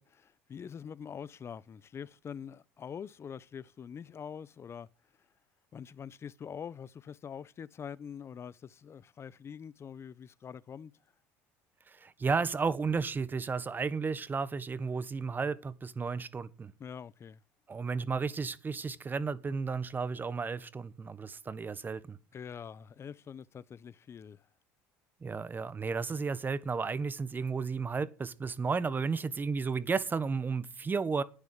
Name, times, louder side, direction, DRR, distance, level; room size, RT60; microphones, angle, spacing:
voice 1, 0.0-4.9 5.7-10.9 16.8-17.4 22.3-24.4, left 7 dB, 35° left, 0.8 m, -44 dB
voice 2, 11.9-16.7 17.7-22.2 25.2-31.2, right 5 dB, 25° right, 1.3 m, -33 dB
11.5 x 9.6 x 7.9 m
hypercardioid pair, 80°, 7 cm